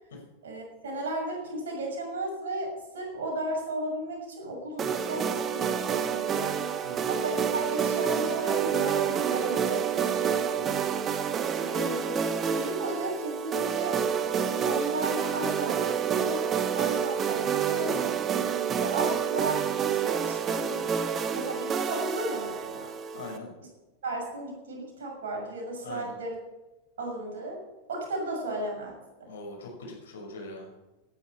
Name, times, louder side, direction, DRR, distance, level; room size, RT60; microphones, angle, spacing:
voice 1, 0.4-6.5 7.1-10.1 11.5-12.2 12.5-18.1 18.8-20.9 21.2-22.9 24.0-26.4 27.0-27.6 27.9-29.0, right 2 dB, 60° right, 0 dB, 6.7 m, -34 dB
sound 1, 4.8-23.4, right 7 dB, 25° right, 1.2 m, -28 dB
voice 2, 10.6-11.0 23.1-23.5 25.8-26.1 29.3-30.7, left 2 dB, 65° left, 0 dB, 5.9 m, -42 dB
17.5 x 10.5 x 5.8 m, 1.1 s
figure-of-eight pair, 90°, 0 cm